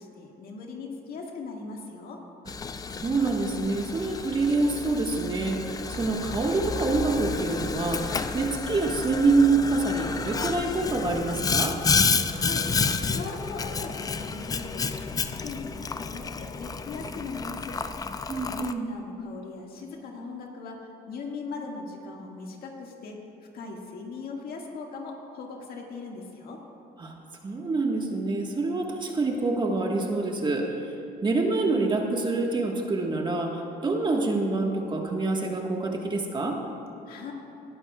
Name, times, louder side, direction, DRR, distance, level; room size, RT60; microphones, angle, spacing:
voice 1, 0.0-2.2 12.2-17.8 18.4-23.2 23.5-26.6 37.1-37.3, left 4 dB, 65° left, 0 dB, 1.8 m, -39 dB
Boiling, 2.5-18.7, left 5 dB, 20° left, 0.4 m, -30 dB
voice 2, 3.0-11.8 18.3-18.9 27.0-27.1 27.4-30.9 31.2-36.6, right 3 dB, 25° right, 1 dB, 1.4 m, -26 dB
19.0 x 11.5 x 2.3 m, 3.0 s
cardioid pair, 110°, 17 cm